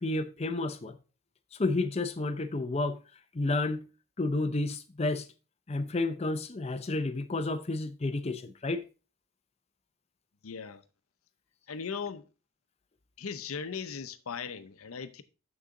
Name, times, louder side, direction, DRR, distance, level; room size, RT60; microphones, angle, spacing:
voice 1, 0.0-1.0 1.5-3.0 3.3-3.9 4.2-5.3 5.7-8.8, left 2 dB, 30° left, 0.5 m, -31 dB
voice 2, 10.4-10.8 11.7-12.3 13.2-15.2, left 6 dB, 80° left, 0.7 m, -38 dB
7.1 x 6.6 x 3.7 m
head